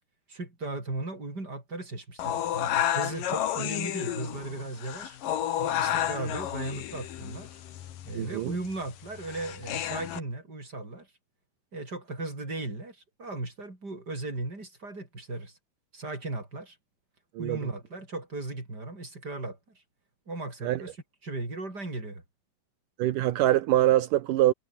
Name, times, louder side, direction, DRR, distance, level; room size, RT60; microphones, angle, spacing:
voice 1, 0.3-5.2 5.6-7.6 8.0-11.1 11.7-15.6 15.9-16.8 17.4-19.8 20.3-21.0 21.2-22.2, right 2 dB, 20° right, 7.1 m, -37 dB
sound 1, 2.2-10.2, left 11 dB, 60° left, 2.9 m, -31 dB
voice 2, 8.2-8.5 17.4-17.6 20.6-20.8 23.0-24.5, right 14 dB, 70° right, 2.0 m, -24 dB
omnidirectional pair, 5.0 m